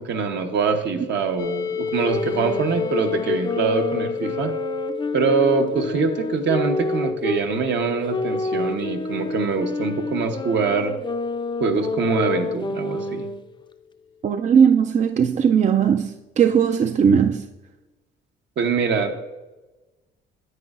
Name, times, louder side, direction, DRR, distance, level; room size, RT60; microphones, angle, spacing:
voice 1, 0.0-4.5 5.1-10.9 11.6-13.2 18.6-19.1, right 5 dB, 65° right, 1.0 m, -24 dB
sound 1, 1.4-13.1, left 7 dB, 80° left, 0.6 m, -33 dB
sound 2, 2.0-7.5 8.1-13.4, left 3 dB, 25° left, 0.5 m, -28 dB
voice 2, 14.2-17.5, right 7 dB, 40° right, 0.4 m, -18 dB
9.5 x 8.8 x 2.5 m
cardioid pair, 90°, 20 cm